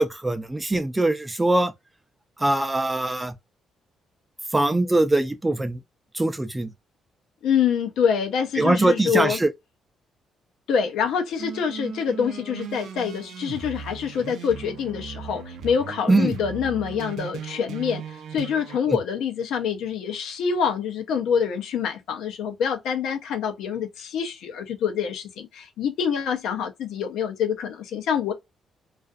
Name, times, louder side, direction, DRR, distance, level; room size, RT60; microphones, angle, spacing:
voice 1, 0.0-1.7 2.4-3.3 4.5-5.8 6.1-6.7 8.6-9.5 16.1-16.4 18.9-19.0, right 2 dB, 15° right, 0.5 m, -22 dB
voice 2, 7.4-9.4 10.7-28.3, left 7 dB, 80° left, 0.6 m, -26 dB
sound 1, 11.4-18.8, right 7 dB, 75° right, 0.5 m, -37 dB
2.4 x 2.3 x 2.4 m
cardioid pair, 90°, 0 cm